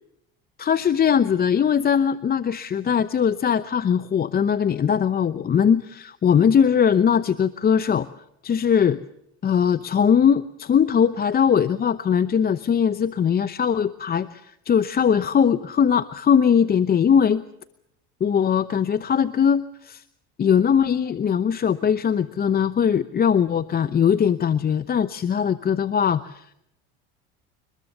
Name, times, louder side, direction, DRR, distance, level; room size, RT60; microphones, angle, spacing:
voice 1, 0.6-8.1 8.4-9.0 9.4-17.4 18.2-20.0 20.4-26.5, left 7 dB, 30° left, 13 dB, 0.8 m, -20 dB
25.5 x 20.5 x 6.7 m, 0.78 s
supercardioid pair, 95°, 30 cm